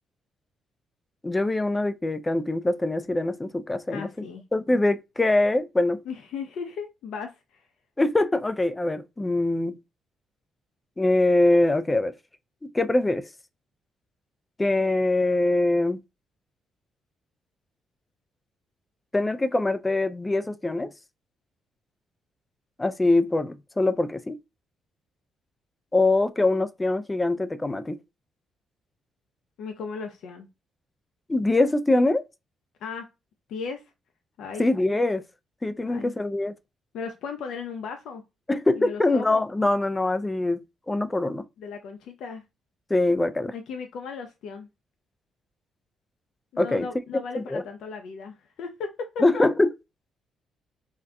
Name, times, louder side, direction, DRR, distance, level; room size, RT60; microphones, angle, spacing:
voice 1, 1.2-4.1 4.5-6.0 8.0-9.8 11.0-12.1 12.6-13.3 14.6-16.0 19.1-20.9 22.8-24.4 25.9-28.0 31.3-32.2 34.6-35.2 35.6-36.5 38.5-41.4 42.9-43.5 46.6-46.9 47.3-47.6 49.2-49.7, left 2 dB, 15° left, 0.4 m, -23 dB
voice 2, 3.9-4.4 6.1-7.6 29.6-30.5 32.8-33.1 33.5-33.9 34.4-34.7 35.8-36.1 36.9-38.2 38.7-39.4 41.6-42.4 43.5-44.7 46.5-49.5, left 5 dB, 80° left, 0.6 m, -36 dB
3.6 x 2.6 x 2.2 m
cardioid pair, 90°, 0 cm